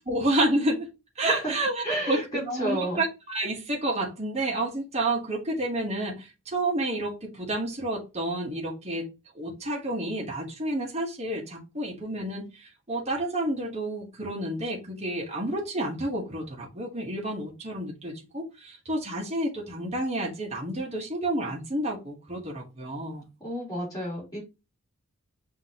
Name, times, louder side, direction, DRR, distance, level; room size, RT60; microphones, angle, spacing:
voice 1, 0.1-0.9 1.2-9.1 9.3-23.2, right 1 dB, 30° right, 1.0 m, -30 dB
voice 2, 1.8-3.0 23.4-24.4, right 1 dB, 15° left, 2.6 m, -31 dB
5.8 x 2.7 x 2.7 m
head